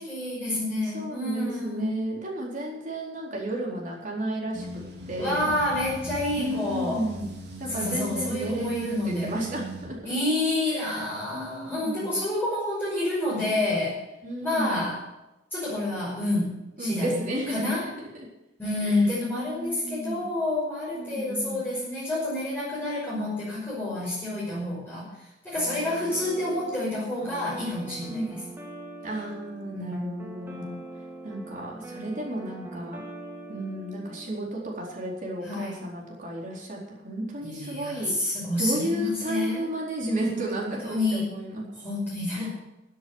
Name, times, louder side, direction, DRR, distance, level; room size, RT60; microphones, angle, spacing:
voice 1, 0.0-2.0 5.2-7.0 7.7-9.3 10.0-14.0 14.4-15.0 15.5-17.2 17.5-17.8 18.6-25.1 25.4-28.4 29.7-30.0 30.5-30.6 35.4-35.8 37.4-39.6 40.2-40.5 40.8-41.2 41.8-42.5, left 1 dB, 10° left, -9 dB, 5.7 m, -29 dB
voice 2, 0.8-5.5 6.4-7.3 7.6-10.1 10.7-11.0 11.3-12.2 14.2-14.9 16.8-18.3 18.8-19.1 19.3-20.2 20.9-21.6 28.1-28.3 29.0-30.8 31.2-33.0 33.5-41.7 42.3-42.5, right 1 dB, 45° right, -2 dB, 4.2 m, -33 dB
sound 1, 4.5-9.9, right 1 dB, 65° right, 3.3 m, -40 dB
sound 2, 25.6-34.3, right 2 dB, 15° right, 2.2 m, -42 dB
13.5 x 7.9 x 8.0 m, 0.94 s
head